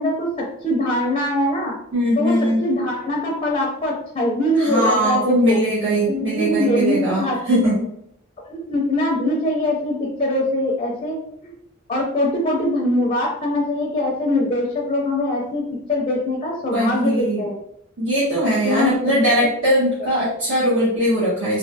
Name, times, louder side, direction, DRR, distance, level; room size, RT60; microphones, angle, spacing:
voice 1, 0.0-1.8 2.2-5.2 5.5-5.6 6.1-7.7 8.5-11.2 11.4-11.5 11.9-15.6 15.9-17.6 18.6-19.3, left 1 dB, 25° left, -2 dB, 0.5 m, -22 dB
voice 2, 1.9-2.6 4.6-7.9 16.7-17.4 18.0-21.6, equal, 60° right, -11 dB, 1.2 m, -20 dB
3.1 x 2.5 x 2.7 m, 0.72 s
head